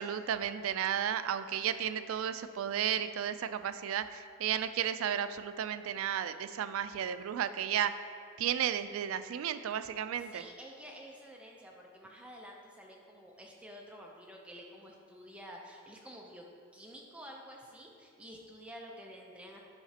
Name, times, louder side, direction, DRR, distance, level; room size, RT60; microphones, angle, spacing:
voice 1, 0.0-7.9 8.4-10.5, right 9 dB, 70° right, 12 dB, 0.3 m, -33 dB
voice 2, 9.9-16.5 16.7-19.6, equal, 5° right, -1 dB, 0.5 m, -50 dB
8.9 x 5.7 x 2.8 m, 2.3 s
head